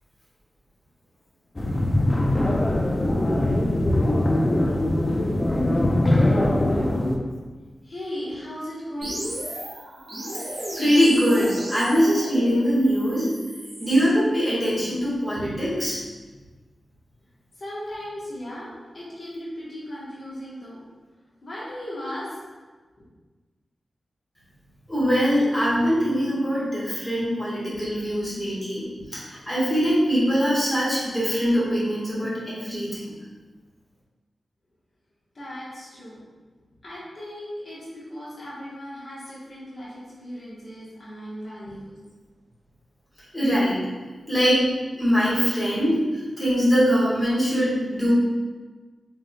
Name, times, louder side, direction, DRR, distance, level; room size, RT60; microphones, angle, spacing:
sound 1, 1.6-7.2, left 1 dB, 25° left, 0.4 m, -21 dB
voice 1, 7.8-9.2 17.6-20.8 21.4-22.3 35.3-36.2 36.8-41.9, equal, 60° left, -8 dB, 1.1 m, -37 dB
sound 2, 9.0-14.1, right 1 dB, 70° right, 1.3 m, -34 dB
voice 2, 10.8-13.3 13.8-16.0 24.9-28.8 29.1-33.1 43.3-43.8 44.3-44.7 44.9-48.1, equal, 5° left, -9 dB, 1.4 m, -22 dB
3.9 x 3.3 x 2.2 m, 1.3 s
wide cardioid pair, 100°, 0 cm